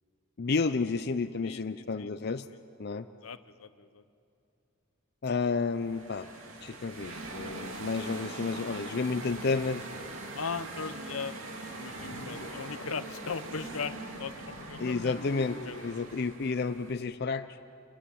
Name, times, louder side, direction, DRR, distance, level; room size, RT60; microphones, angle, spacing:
voice 1, 0.4-2.5 2.8-3.1 5.2-6.3 6.6-9.8 14.8-15.6 15.8-17.6, left 4 dB, 50° left, 10 dB, 0.5 m, -31 dB
voice 2, 1.4-2.1 3.2-4.0 10.3-11.4 11.7-15.1 15.6-15.8, left 5 dB, 90° left, 13 dB, 0.9 m, -38 dB
sound 1, 5.6-16.9, right 2 dB, 80° right, 2.7 m, -42 dB
sound 2, 12.0-16.0, left 1 dB, 65° left, 1.6 m, -45 dB
26.5 x 22.0 x 8.8 m, 2.7 s
head